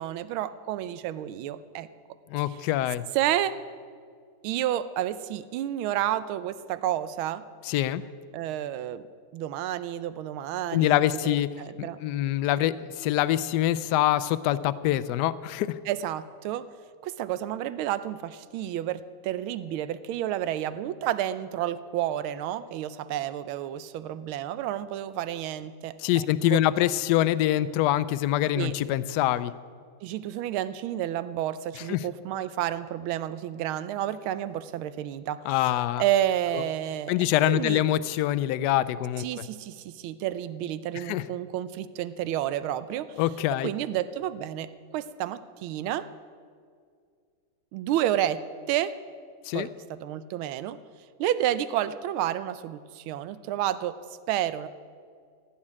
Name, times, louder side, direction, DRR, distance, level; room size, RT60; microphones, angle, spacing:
voice 1, 0.0-1.9 3.1-3.6 4.4-7.4 8.3-9.0 9.3-12.0 15.9-16.7 17.0-26.6 28.5-28.7 30.0-35.4 36.0-37.1 37.5-37.8 39.2-43.1 43.6-46.1 47.7-48.4 48.7-48.9 49.5-50.8 51.2-54.0 54.3-54.7, right 12 dB, 85° right, 14 dB, 1.5 m, -30 dB
voice 2, 2.3-3.0 7.6-8.0 10.7-11.5 11.8-15.8 26.0-29.5 31.9-32.0 35.5-36.0 36.5-36.6 37.1-39.2 40.9-41.2 43.2-43.7 49.4-49.7, left 13 dB, 75° left, 15 dB, 1.0 m, -25 dB
16.0 x 7.4 x 9.9 m, 2.1 s
omnidirectional pair, 2.3 m